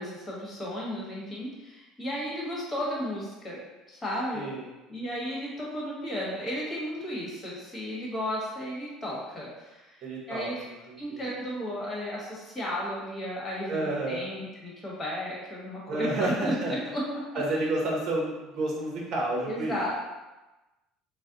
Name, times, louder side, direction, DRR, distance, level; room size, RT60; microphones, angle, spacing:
voice 1, 0.0-3.6 3.9-9.9 10.3-10.7 11.0-17.0 19.4-19.9, equal, 20° left, -5 dB, 1.3 m, -34 dB
voice 2, 4.3-4.6 10.0-10.7 11.1-11.2 13.7-14.2 15.9-16.7 17.4-19.9, right 2 dB, 50° right, -2 dB, 1.0 m, -30 dB
4.1 x 2.2 x 3.8 m, 1.1 s
cardioid pair, 140°, 0 cm